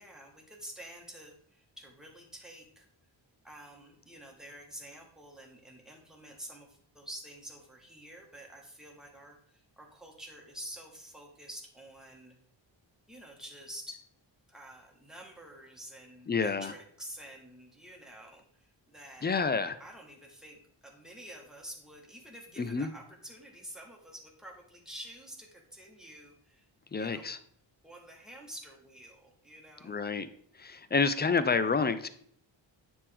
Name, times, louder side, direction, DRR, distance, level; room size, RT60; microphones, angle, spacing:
voice 1, 0.0-2.9 3.4-12.4 13.1-14.0 14.5-19.3 19.8-26.7 27.0-27.2 27.8-29.9, right 1 dB, ahead, -1 dB, 1.4 m, -48 dB
voice 2, 16.3-16.7 19.2-19.8 22.6-22.9 26.9-27.4 29.8-30.3 30.5-32.1, left 4 dB, 25° left, 12 dB, 0.3 m, -29 dB
9.4 x 3.6 x 3.4 m, 0.62 s
wide cardioid pair, 125°, 47 cm